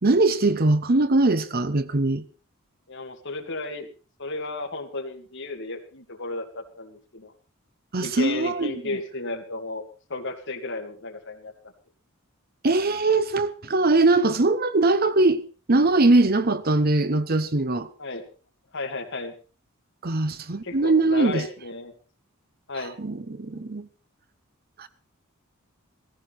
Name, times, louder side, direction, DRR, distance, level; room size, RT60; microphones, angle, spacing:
voice 1, 0.0-2.2 7.9-8.8 12.6-15.4 15.7-17.9 20.0-21.4 23.0-23.9 24.8-24.9, right 2 dB, 45° right, 0.9 m, -21 dB
voice 2, 2.9-3.9 4.2-7.3 7.9-11.5 18.0-18.3 18.7-19.3 20.6-21.9 22.7-23.0, left 3 dB, 55° left, 2.5 m, -33 dB
16.5 x 15.0 x 4.2 m
head